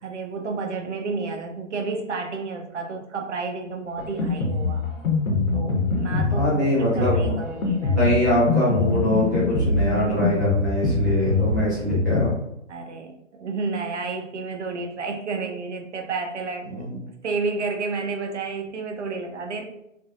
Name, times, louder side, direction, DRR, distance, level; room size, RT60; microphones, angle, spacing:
voice 1, 0.0-4.8 5.5-6.5 6.9-8.0 12.7-19.7, right 4 dB, 60° right, 2 dB, 0.8 m, -31 dB
Drum kit, 4.0-12.3, left 3 dB, 80° left, 1.0 m, -24 dB
voice 2, 6.3-7.4 7.9-12.3 16.7-17.0, equal, 15° right, -9 dB, 0.6 m, -23 dB
3.4 x 2.6 x 2.4 m, 0.80 s
hypercardioid pair, 165°, 39 cm